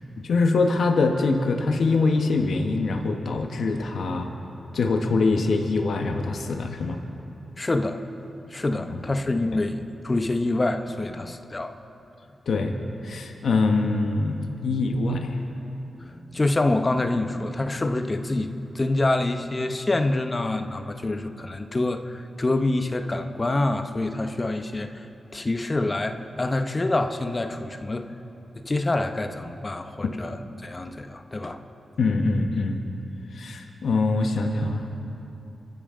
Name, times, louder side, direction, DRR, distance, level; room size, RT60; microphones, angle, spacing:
voice 1, 0.2-4.3 4.7-7.0 8.7-8.8 12.5-12.7 13.0-15.4 32.0-32.8 33.3-34.9, left 3 dB, 80° left, 3 dB, 1.3 m, -24 dB
voice 2, 7.6-8.0 8.5-11.8 16.0-25.1 25.3-28.1 28.5-31.6, left 2 dB, 35° left, 7 dB, 1.1 m, -26 dB
26.0 x 14.0 x 3.8 m, 3.0 s
cardioid pair, 55°, 0 cm